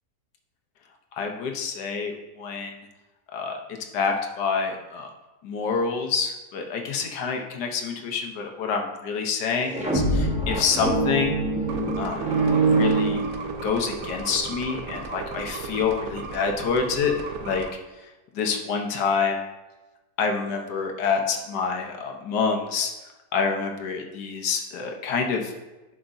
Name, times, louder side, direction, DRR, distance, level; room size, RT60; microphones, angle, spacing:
voice 1, 1.2-2.7 3.3-3.6 3.9-5.1 5.4-11.4 12.0-13.2 13.6-17.1 17.4-17.7 18.3-19.4 20.2-22.9 23.3-25.5, left 5 dB, 85° left, 3 dB, 1.5 m, -27 dB
sound 1, 9.6-13.8, right 3 dB, 5° right, 1.1 m, -24 dB
sound 2, 11.7-17.7, right 4 dB, 90° right, 1.3 m, -35 dB
11.0 x 5.9 x 2.6 m, 1.1 s
omnidirectional pair, 1.8 m